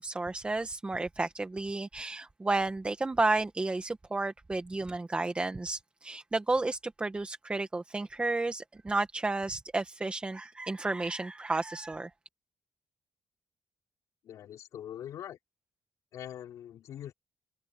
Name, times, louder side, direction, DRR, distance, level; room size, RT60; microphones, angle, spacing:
voice 1, 0.0-12.1, right 2 dB, 20° right, 1.9 m, -32 dB
voice 2, 14.2-15.4 16.1-17.1, left 10 dB, 85° left, 3.9 m, -43 dB
cardioid pair, 100°, 6 cm